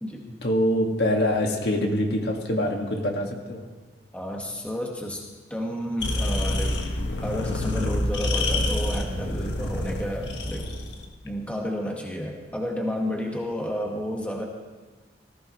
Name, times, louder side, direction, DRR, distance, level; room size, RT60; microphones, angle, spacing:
voice 1, 0.4-3.6, left 1 dB, 70° left, 1 dB, 1.8 m, -24 dB
voice 2, 4.1-5.2 5.5-6.8 7.2-10.7 11.2-14.4, equal, 5° left, -1 dB, 1.4 m, -31 dB
sound 1, 6.0-11.0, left 1 dB, 90° left, 1.5 m, -27 dB
18.5 x 14.5 x 3.1 m, 1.3 s
head